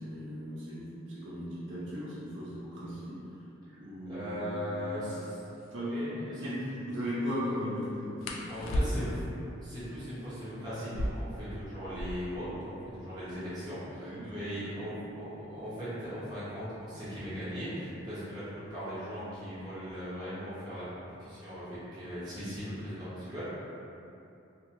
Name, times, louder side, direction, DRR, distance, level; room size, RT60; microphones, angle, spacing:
voice 1, 0.0-3.2 3.7-5.1 5.7-9.4 14.0-14.3 14.6-14.7, equal, 75° right, -9 dB, 0.7 m, -38 dB
voice 2, 4.1-5.4 5.8-6.5 8.5-9.2 9.6-23.5, equal, 20° right, -13 dB, 0.8 m, -39 dB
sound 1, 5.5-5.8 8.2-9.3 10.8-12.4 12.7-12.8 13.0-13.6 14.2-16.8 17.8-18.1 18.5-19.0 19.3-20.1, equal, 85° left, 0.3 m, -36 dB
2.5 x 2.4 x 2.9 m, 2.8 s
head